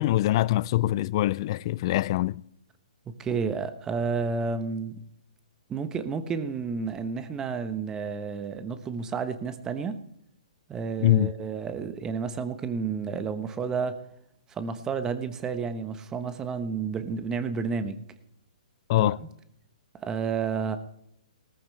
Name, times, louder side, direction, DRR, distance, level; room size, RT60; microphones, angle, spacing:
voice 1, 0.0-2.4 11.0-11.3 18.9-19.2, left 15 dB, 40° left, 0.5 m, -23 dB
voice 2, 3.1-4.9 5.7-10.0 10.7-14.0 14.5-18.0 19.0-19.3 19.9-20.8, right 5 dB, 15° right, 1.1 m, -31 dB
18.5 x 14.0 x 3.3 m
hypercardioid pair, 145°, 4 cm